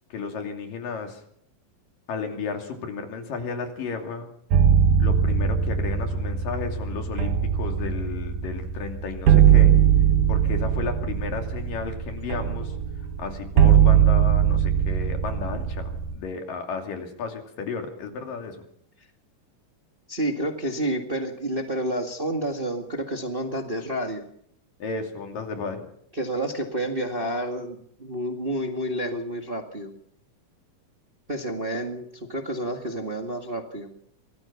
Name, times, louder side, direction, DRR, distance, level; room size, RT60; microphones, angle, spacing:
voice 1, 0.1-1.2 2.1-4.3 5.0-9.7 10.3-12.8 13.2-18.6 24.8-25.9, left 5 dB, 85° left, 4 dB, 4.4 m, -33 dB
sound 1, 4.5-16.1, right 9 dB, 70° right, 2.8 m, -21 dB
voice 2, 20.1-24.2 26.1-29.9 31.3-33.9, right 1 dB, 25° right, 3 dB, 1.4 m, -29 dB
24.5 x 18.0 x 5.9 m, 0.67 s
omnidirectional pair, 3.8 m